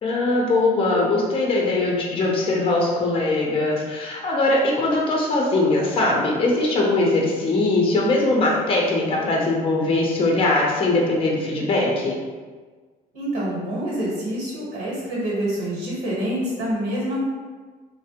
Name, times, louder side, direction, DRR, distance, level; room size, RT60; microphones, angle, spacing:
voice 1, 0.0-12.2, left 2 dB, 35° left, -2 dB, 0.6 m, -21 dB
voice 2, 13.1-17.2, right 1 dB, 70° right, -6 dB, 1.1 m, -26 dB
3.2 x 2.1 x 2.8 m, 1.4 s
cardioid pair, 110°, 17 cm